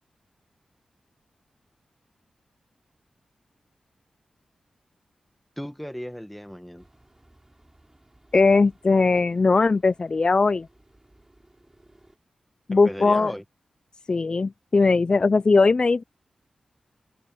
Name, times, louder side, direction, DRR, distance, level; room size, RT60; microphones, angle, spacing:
voice 1, 5.6-6.9 12.7-13.4, equal, 5° left, 1.3 m, -36 dB
sound 1, 6.8-12.2, right 1 dB, 20° right, 6.2 m, -58 dB
voice 2, 8.3-10.7 12.7-13.3 14.1-16.0, left 3 dB, 45° left, 0.4 m, -19 dB
open air
cardioid pair, 50°, 2 cm